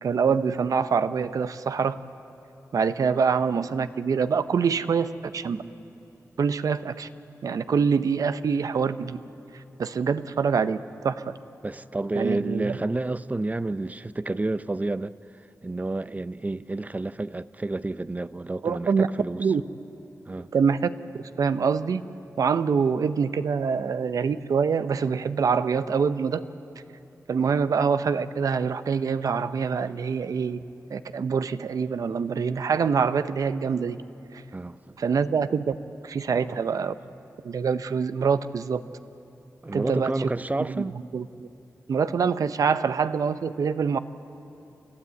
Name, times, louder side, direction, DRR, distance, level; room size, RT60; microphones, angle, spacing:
voice 1, 0.0-2.0 2.7-5.6 6.4-7.1 7.4-9.2 9.8-10.8 11.0-11.3 12.1-12.8 18.6-19.1 19.4-19.6 20.5-20.9 21.4-22.0 22.4-26.4 27.3-30.6 30.9-34.0 34.3-34.4 35.0-35.7 36.0-36.9 37.4-38.8 39.7-40.1 40.6-41.5 41.9-44.0, right 6 dB, 80° right, 0.7 m, -25 dB
voice 2, 11.6-15.2 15.6-19.5 20.3-20.5 34.5-35.0 36.3-36.6 39.6-41.0, right 2 dB, 25° right, 0.5 m, -30 dB
29.5 x 12.5 x 8.3 m
cardioid pair, 55°, 6 cm